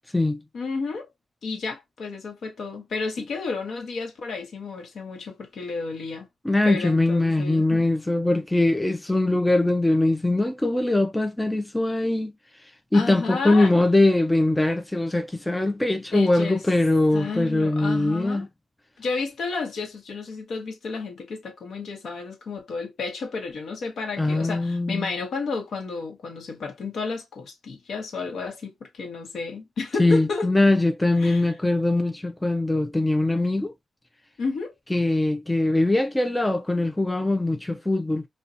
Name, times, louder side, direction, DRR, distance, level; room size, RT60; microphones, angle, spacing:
voice 1, 0.5-1.1 1.4-6.3 6.6-7.8 12.9-13.7 16.1-16.6 17.1-18.5 19.0-30.5 31.2-31.5 34.4-34.7, left 4 dB, 70° left, 0.9 m, -32 dB
voice 2, 6.4-12.3 12.9-18.5 24.2-25.1 30.0-33.7 34.9-38.3, left 2 dB, 10° left, 0.3 m, -22 dB
2.6 x 2.1 x 2.4 m
wide cardioid pair, 110°, 0 cm